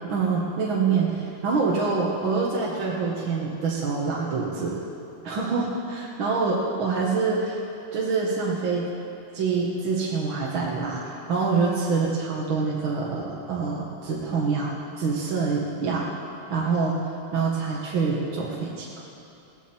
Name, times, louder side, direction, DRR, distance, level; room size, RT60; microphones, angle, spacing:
voice 1, 0.1-4.8 5.2-7.6 7.9-8.9 9.3-16.1 16.5-17.0 17.3-19.0, right 4 dB, 50° right, -4 dB, 1.9 m, -26 dB
21.0 x 15.0 x 4.5 m, 2.9 s
omnidirectional pair, 3.4 m